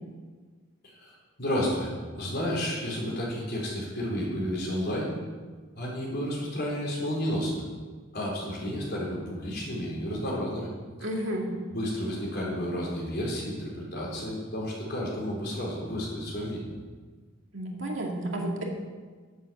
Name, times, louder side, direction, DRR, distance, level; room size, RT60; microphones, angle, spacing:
voice 1, 1.4-5.1 5.8-7.6 8.1-10.7 11.7-16.7, equal, 50° left, -3 dB, 4.1 m, -31 dB
voice 2, 11.0-11.5 17.5-18.6, right 1 dB, 65° right, 0 dB, 2.3 m, -31 dB
10.5 x 9.2 x 7.2 m, 1.5 s
head